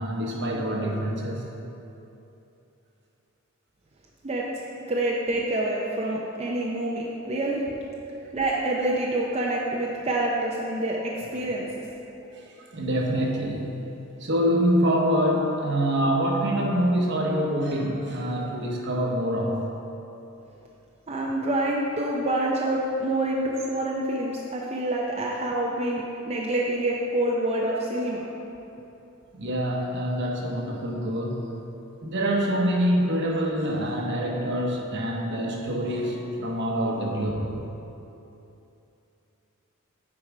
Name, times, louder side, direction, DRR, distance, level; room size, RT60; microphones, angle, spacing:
voice 1, 0.0-1.4 12.3-13.8 14.2-19.6 29.3-31.6 32.0-37.6, equal, 60° right, -1 dB, 1.1 m, -25 dB
voice 2, 4.8-7.6 8.3-11.9 21.1-28.2, right 1 dB, 30° right, -3 dB, 0.6 m, -27 dB
8.6 x 4.7 x 4.9 m, 2.9 s
head